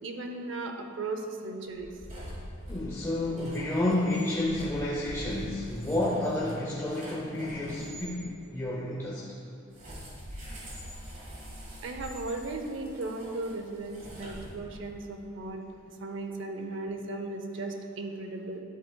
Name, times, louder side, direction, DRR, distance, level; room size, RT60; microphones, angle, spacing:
voice 1, 0.0-1.9 11.8-15.6 16.0-18.6, right 2 dB, 60° right, 4 dB, 0.6 m, -36 dB
sound 1, 1.7-8.1 9.7-14.9, equal, 35° right, 1.6 m, -44 dB
voice 2, 2.7-8.3 8.5-9.2, left 1 dB, 15° left, -5 dB, 0.6 m, -30 dB
10.0 x 8.4 x 2.3 m, 2.6 s
head